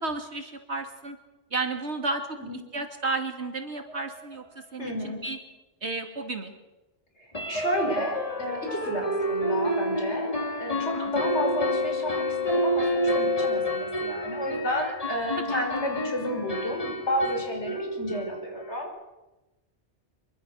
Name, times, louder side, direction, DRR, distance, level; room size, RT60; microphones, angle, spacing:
voice 1, 0.0-1.2 1.5-5.4 5.8-6.5 10.9-11.1 15.5-15.6, right 3 dB, 80° right, 5 dB, 3.0 m, -33 dB
sound 1, 3.4-3.5 3.9-4.0 4.3-4.4 7.3-18.8, left 1 dB, 30° left, 2.0 m, -29 dB
voice 2, 4.8-5.3 7.2-10.3 10.6-18.9, equal, 85° left, 2 dB, 5.8 m, -31 dB
25.0 x 23.5 x 6.5 m, 1.0 s
omnidirectional pair, 1.1 m